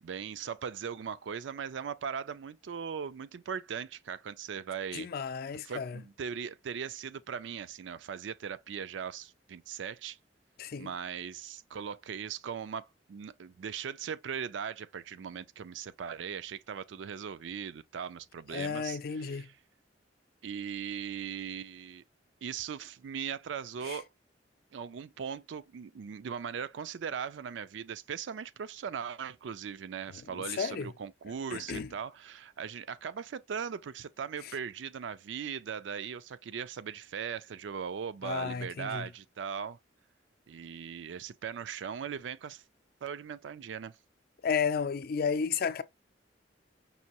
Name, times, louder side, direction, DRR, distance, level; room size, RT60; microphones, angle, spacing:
voice 1, 0.0-5.1 5.5-10.2 10.8-19.6 20.4-22.0 22.4-24.1 24.7-39.8 40.5-42.6 43.0-43.9, right 7 dB, 80° right, 0.4 m, -39 dB
voice 2, 4.9-6.0 10.6-10.9 18.5-19.5 23.8-24.0 30.6-30.9 31.5-31.9 38.2-39.1 44.4-45.8, left 6 dB, 55° left, 0.4 m, -32 dB
5.5 x 2.6 x 2.9 m
head